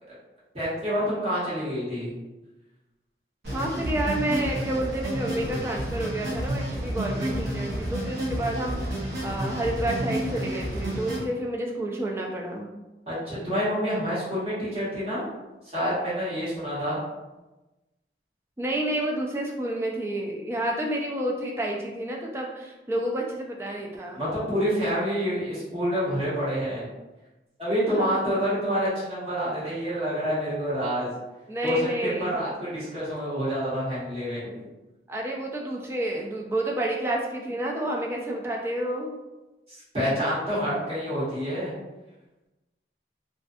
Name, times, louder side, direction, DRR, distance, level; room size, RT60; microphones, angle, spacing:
voice 1, 0.5-2.1 13.1-15.2 15.7-17.0 24.1-26.8 27.6-31.1 31.6-34.5 39.7-41.7, equal, 35° right, -10 dB, 1.1 m, -27 dB
sound 1, 3.4-11.2, right 1 dB, 70° right, 0.8 m, -30 dB
voice 2, 3.5-12.7 18.6-24.2 27.9-28.2 31.5-32.4 35.1-39.2, right 1 dB, 15° right, -1 dB, 0.3 m, -30 dB
2.5 x 2.3 x 2.4 m, 1.1 s
head